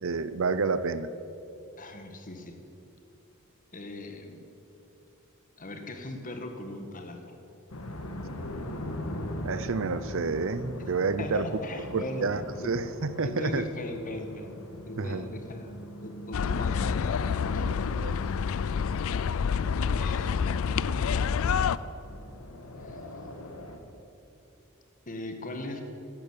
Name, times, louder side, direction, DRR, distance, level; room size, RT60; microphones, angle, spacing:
voice 1, 0.0-1.1 9.4-11.5 11.9-13.7 15.0-15.3 17.6-18.2, right 4 dB, 65° right, 14 dB, 0.6 m, -29 dB
voice 2, 1.8-2.6 3.7-4.5 5.6-7.4 11.2-12.7 13.2-14.5 14.8-17.1 17.3-17.7 20.0-20.8 22.8-23.0 25.1-25.8, left 1 dB, 40° left, 5 dB, 1.6 m, -39 dB
sound 1, 7.7-23.8, left 1 dB, 85° left, 1.6 m, -42 dB
sound 2, 16.3-21.8, left 6 dB, 70° left, 0.4 m, -28 dB
13.5 x 10.5 x 8.9 m, 2.9 s
head